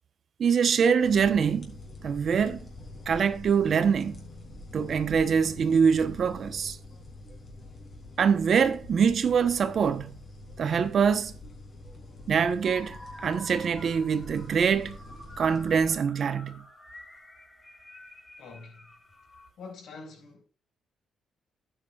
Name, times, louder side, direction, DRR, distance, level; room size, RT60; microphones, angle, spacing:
voice 1, 0.4-1.8 2.0-2.7 3.1-4.2 4.7-6.8 8.2-10.2 10.6-11.3 12.3-15.0 15.4-16.6, right 6 dB, 55° right, 1.0 m, -24 dB
sound 1, 1.0-15.9, left 2 dB, 40° left, 4.0 m, -45 dB
sound 2, 12.6-19.5, left 1 dB, 15° left, 4.6 m, -48 dB
voice 2, 18.4-18.8 19.6-20.4, left 4 dB, 70° left, 6.1 m, -45 dB
11.5 x 9.1 x 2.5 m
cardioid pair, 90°, 0 cm